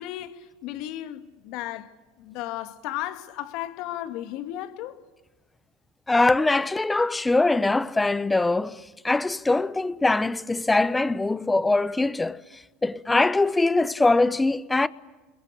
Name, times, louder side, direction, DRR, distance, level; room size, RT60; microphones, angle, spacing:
voice 1, 0.0-1.9 2.2-5.0, left 13 dB, 65° left, 2.0 m, -34 dB
voice 2, 6.1-12.4 12.8-14.9, left 2 dB, 10° left, 0.9 m, -22 dB
28.0 x 21.5 x 8.5 m
hypercardioid pair, 90°, 0 cm